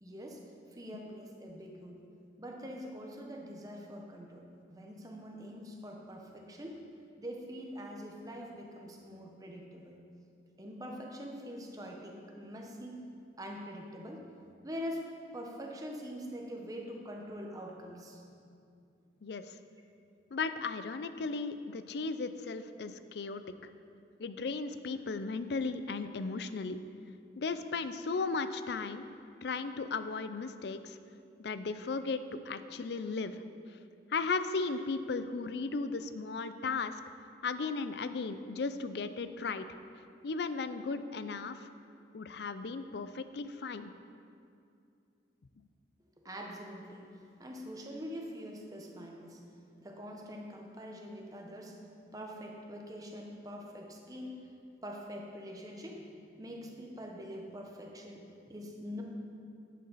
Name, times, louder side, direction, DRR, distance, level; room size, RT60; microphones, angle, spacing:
voice 1, 0.0-0.4 0.7-2.0 2.4-6.8 7.2-10.0 10.6-13.0 13.4-14.2 14.6-15.0 15.3-18.2 46.2-47.1 47.4-49.4 49.8-51.8 52.1-54.4 54.8-59.0, equal, 20° right, 0 dB, 1.0 m, -44 dB
voice 2, 19.2-19.5 20.3-23.4 24.2-26.8 27.4-29.1 29.4-31.0 31.4-32.2 32.5-33.4 34.1-36.9 37.4-39.7 40.2-41.7 42.1-43.9, left 4 dB, 65° left, 11 dB, 0.4 m, -36 dB
10.5 x 8.5 x 4.1 m, 2.5 s
head